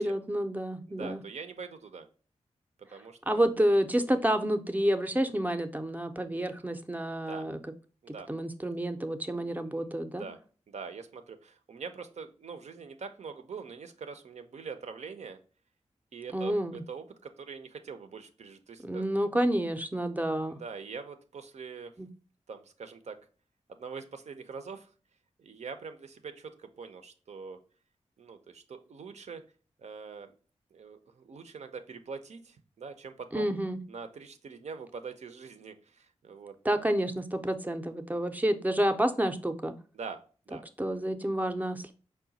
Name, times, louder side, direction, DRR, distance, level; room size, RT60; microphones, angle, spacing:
voice 1, 0.0-1.2 3.3-7.6 8.3-10.2 16.3-16.8 18.8-20.6 22.0-22.1 33.3-33.8 36.6-39.7 40.8-41.9, right 1 dB, 15° right, 8 dB, 0.5 m, -29 dB
voice 2, 0.9-2.1 2.8-3.4 7.3-7.5 8.0-8.3 9.6-10.4 10.7-15.4 16.1-19.0 20.5-21.9 22.5-23.2 23.7-24.9 25.4-27.6 28.2-29.4 29.8-30.3 30.7-33.5 33.9-36.6 39.9-40.6, right 5 dB, 70° right, 8 dB, 0.6 m, -43 dB
4.8 x 2.2 x 3.9 m, 0.39 s
cardioid pair, 65°, 12 cm